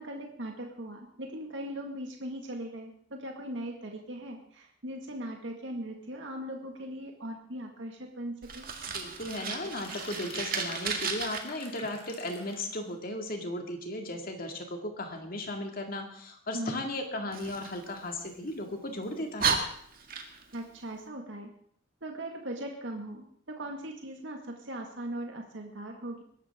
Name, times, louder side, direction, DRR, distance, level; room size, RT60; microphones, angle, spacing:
voice 1, 0.0-8.7 16.5-16.9 20.5-21.5 22.0-26.2, right 1 dB, 75° right, 2 dB, 2.0 m, -39 dB
Fire, 8.4-11.4 17.3-18.5 19.0-19.1 19.4-20.6, right 5 dB, 50° right, 1.9 m, -33 dB
voice 2, 8.9-19.6, left 1 dB, 50° left, 3 dB, 2.3 m, -36 dB
sound 1, 9.5-12.8, left 3 dB, 30° left, 2.9 m, -48 dB
21.0 x 12.0 x 3.7 m, 0.63 s
head